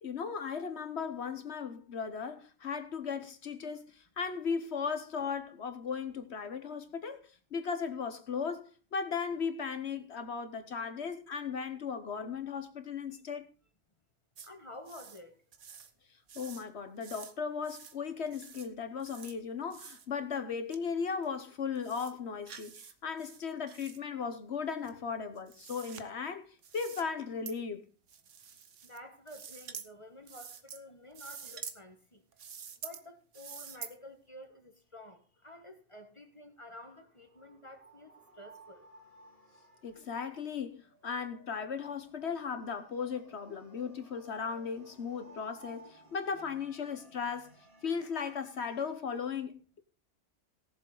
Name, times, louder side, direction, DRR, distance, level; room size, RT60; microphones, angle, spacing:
voice 1, 0.0-7.2 7.5-13.5 16.3-27.8 39.8-47.5 47.8-49.8, left 6 dB, 65° left, 1.3 m, -37 dB
voice 2, 14.4-15.4 28.8-32.2 32.8-38.8, left 1 dB, 25° left, 1.4 m, -51 dB
sound 1, 14.4-14.5 14.8-15.2 15.5-15.9 16.3-16.6 17.0-17.3 17.6-18.0 18.3-18.7 19.0-19.3 19.7-20.1 20.7-20.8 21.2-21.3 21.7-22.1 22.5-22.9 23.2-24.0 24.8-26.0 26.6-27.0 27.5-27.6 28.1-29.0 29.3-29.9 30.3-30.8 31.1-31.8 32.3-33.0 33.3-33.9, right 7 dB, 80° right, 1.4 m, -47 dB
sound 2, 36.8-48.9, right 1 dB, 50° right, 3.1 m, -59 dB
17.5 x 7.3 x 3.9 m
omnidirectional pair, 1.2 m